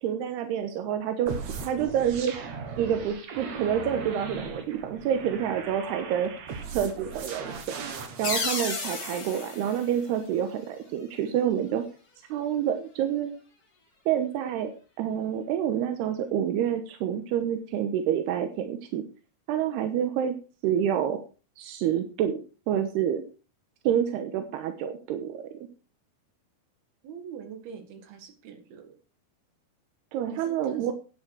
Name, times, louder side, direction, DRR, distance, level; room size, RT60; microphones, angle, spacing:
voice 1, 0.0-1.3 1.6-2.3 2.8-6.3 6.7-7.8 8.2-11.8 12.3-13.3 14.1-14.7 15.0-19.0 19.5-20.3 20.6-21.2 21.6-22.4 22.7-23.2 23.8-25.4 30.1-30.9, right 9 dB, 90° right, 7 dB, 3.1 m, -28 dB
sound 1, 1.3-8.4, right 5 dB, 55° right, 2.5 m, -38 dB
sound 2, 8.2-10.8, left 3 dB, 35° left, 4.1 m, -33 dB
voice 2, 27.0-28.9 30.3-30.9, right 7 dB, 75° right, 5 dB, 3.7 m, -44 dB
11.0 x 9.3 x 4.7 m, 0.34 s
omnidirectional pair, 4.6 m